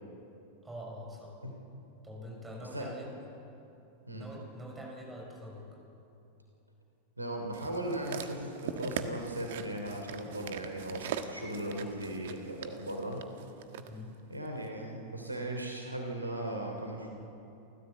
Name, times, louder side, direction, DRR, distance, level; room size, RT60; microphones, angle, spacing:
voice 1, 0.6-1.4 2.0-3.1 4.1-5.8 13.9-14.1, equal, 10° right, 0 dB, 6.6 m, -44 dB
voice 2, 7.2-13.2 13.8-13.9 14.3-17.1, right 1 dB, 85° right, 2 dB, 3.0 m, -37 dB
sound 1, 7.5-13.9 14.6-14.7, right 8 dB, 55° right, 1.4 m, -41 dB
29.0 x 14.5 x 7.9 m, 2.8 s
figure-of-eight pair, 90°, 0 cm